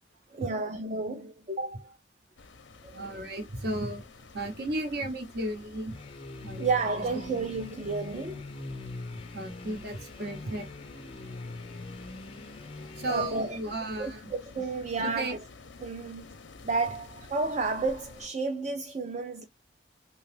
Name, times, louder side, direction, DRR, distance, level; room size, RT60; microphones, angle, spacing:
voice 1, 0.3-2.0 2.8-3.2 6.6-8.4 13.1-13.6 14.0-15.4 15.8-16.4 16.6-19.5, right 3 dB, 40° right, 0.4 m, -31 dB
sound 1, 2.4-18.3, left 4 dB, 90° left, 0.6 m, -50 dB
voice 2, 2.9-6.0 6.4-6.7 9.3-10.7 13.0-14.2 15.0-15.3, right 1 dB, 60° right, 0.8 m, -34 dB
sound 2, 5.9-13.7, left 2 dB, 30° left, 0.4 m, -43 dB
2.9 x 2.3 x 3.2 m
head